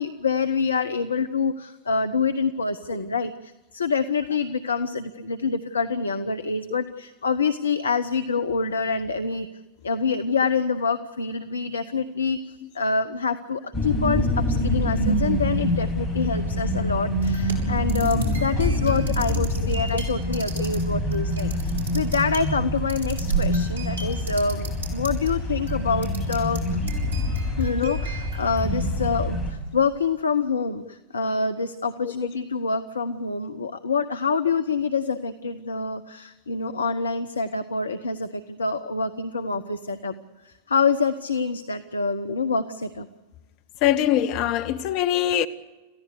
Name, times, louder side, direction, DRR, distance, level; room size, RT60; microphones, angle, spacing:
voice 1, 0.0-9.5 9.8-26.8 27.6-40.1 40.4-43.1, left 4 dB, 75° left, 0.8 m, -26 dB
sound 1, 13.7-29.5, left 1 dB, ahead, 6.8 m, -26 dB
sound 2, 17.2-25.3 25.6-26.6 26.9-29.3, right 6 dB, 90° left, 6.7 m, -36 dB
voice 2, 43.8-45.5, left 11 dB, 45° left, 1.2 m, -22 dB
28.0 x 15.5 x 8.3 m
figure-of-eight pair, 90°, 0 cm